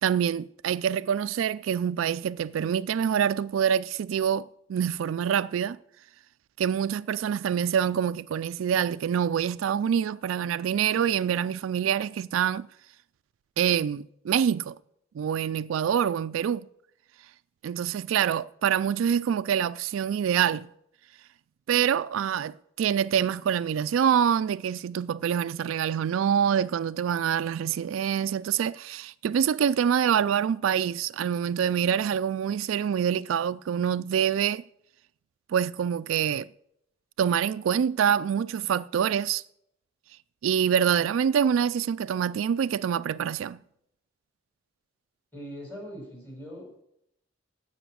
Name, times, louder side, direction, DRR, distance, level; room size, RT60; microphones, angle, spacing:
voice 1, 0.0-5.8 6.6-12.7 13.6-14.8 15.1-16.7 17.6-20.7 21.7-34.6 35.5-36.5 37.2-39.4 40.4-43.6, right 8 dB, 85° right, 0.3 m, -26 dB
voice 2, 45.3-46.8, equal, 10° left, 5.3 m, -41 dB
16.0 x 6.0 x 6.3 m
head